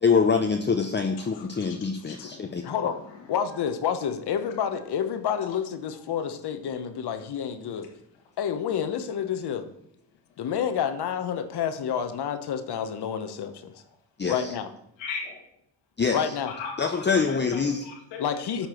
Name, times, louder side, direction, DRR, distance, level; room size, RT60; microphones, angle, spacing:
voice 1, 0.0-2.6 14.2-14.5 16.0-16.3 16.8-17.8, left 5 dB, 25° left, 4 dB, 0.7 m, -25 dB
voice 2, 1.1-3.7 5.5-5.6 5.9-6.1 11.5-11.6 13.7-13.8 15.0-15.4 16.5-18.7, left 5 dB, 90° left, 1 dB, 2.0 m, -40 dB
voice 3, 2.6-3.0 3.3-7.9 8.4-9.7 10.4-13.7 14.3-14.7 16.1-16.5 18.2-18.7, left 8 dB, 65° left, 9 dB, 1.1 m, -29 dB
12.5 x 4.5 x 4.5 m, 0.74 s
supercardioid pair, 65°, 42 cm